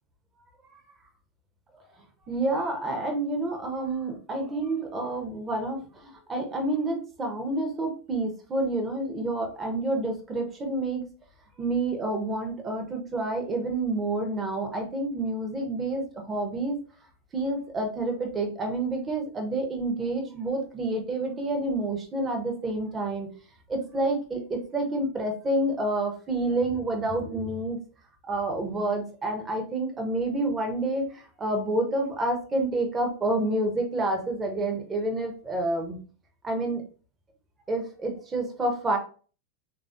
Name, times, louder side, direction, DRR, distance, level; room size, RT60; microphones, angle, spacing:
voice 1, 2.3-11.1 11.6-16.8 17.3-23.3 23.7-27.8 28.2-36.0 36.4-36.8 37.7-39.0, right 2 dB, 20° right, 2 dB, 0.7 m, -29 dB
3.4 x 2.4 x 2.5 m, 0.38 s
figure-of-eight pair, 90°, 0 cm